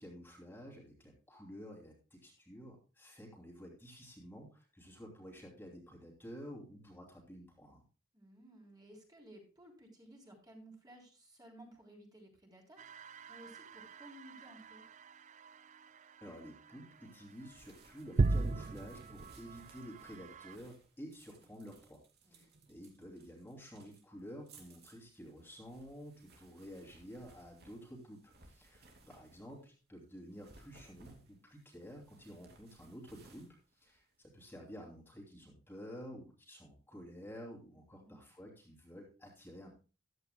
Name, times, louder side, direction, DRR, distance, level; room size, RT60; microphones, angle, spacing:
voice 1, 0.0-7.8 16.2-22.0 22.3-39.7, equal, 10° left, -1 dB, 2.9 m, -51 dB
voice 2, 8.1-12.8 13.3-14.8 22.2-22.4 37.8-38.3, right 1 dB, 20° right, 0 dB, 3.4 m, -57 dB
sound 1, 12.8-20.6, right 3 dB, 35° right, 0.4 m, -39 dB
sound 2, 17.1-29.7 30.2-34.5, right 3 dB, 55° right, 2.8 m, -63 dB
14.5 x 11.5 x 2.2 m, 0.33 s
head